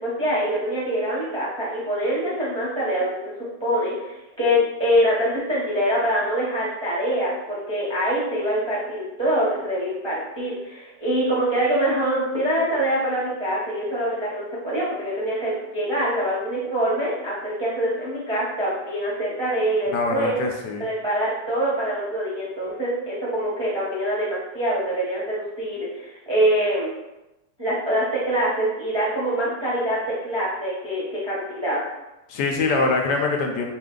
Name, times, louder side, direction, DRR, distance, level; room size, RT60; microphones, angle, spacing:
voice 1, 0.0-20.3 20.8-26.9 27.6-31.8, right 1 dB, 25° right, -7 dB, 0.6 m, -24 dB
voice 2, 19.9-20.8 32.3-33.7, left 3 dB, 75° left, 2 dB, 1.2 m, -23 dB
4.4 x 2.5 x 3.7 m, 0.96 s
omnidirectional pair, 1.9 m